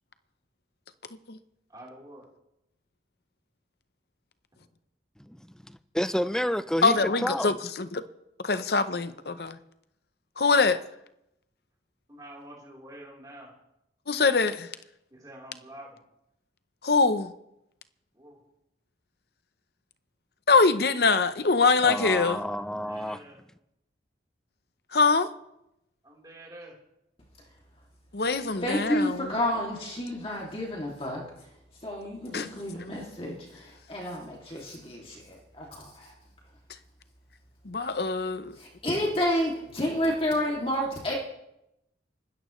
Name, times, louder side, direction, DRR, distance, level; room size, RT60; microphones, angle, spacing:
voice 1, 1.7-2.3 6.8-7.3 12.1-13.5 15.1-16.0 18.1-18.4 22.7-23.4 26.0-26.7, right 1 dB, 20° right, 3.9 m, -46 dB
voice 2, 5.7-7.0 7.2-7.5 21.8-23.2, equal, 5° left, 0.4 m, -29 dB
voice 3, 6.8-8.0 8.4-9.6 10.4-10.8 14.1-14.7 16.8-17.3 20.5-22.4 24.9-25.3 28.1-29.3 32.3-32.5 37.6-38.6, left 4 dB, 55° left, 0.8 m, -23 dB
voice 4, 28.6-31.2 31.8-33.3 33.9-36.1 38.6-41.2, left 1 dB, 30° left, 2.5 m, -30 dB
25.0 x 13.0 x 3.2 m
head